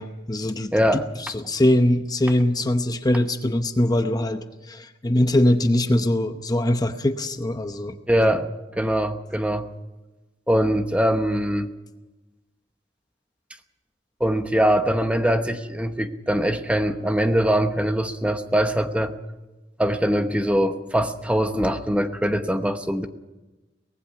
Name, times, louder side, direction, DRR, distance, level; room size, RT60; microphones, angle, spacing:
voice 1, 0.0-8.4, left 1 dB, 20° left, 8 dB, 0.8 m, -22 dB
voice 2, 0.7-1.1 8.1-8.5 8.8-9.7 10.5-11.7 14.2-19.1 19.8-23.1, equal, 5° right, 8 dB, 1.0 m, -22 dB
23.5 x 18.5 x 5.9 m, 1.1 s
head